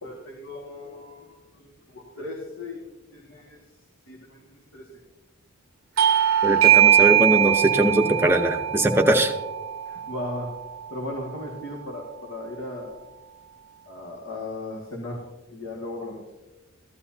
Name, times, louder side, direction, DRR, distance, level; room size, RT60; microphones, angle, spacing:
voice 1, 0.0-2.8 3.1-3.6 4.1-4.9 9.9-10.5 10.9-13.0 13.9-15.2 15.5-16.3, left 1 dB, 60° left, -2 dB, 2.0 m, -37 dB
Bell / Doorbell, 6.0-11.0, right 10 dB, 70° right, 0.6 m, -21 dB
voice 2, 6.4-9.3, right 1 dB, 10° right, 3 dB, 0.8 m, -21 dB
15.0 x 12.0 x 2.8 m, 1.1 s
head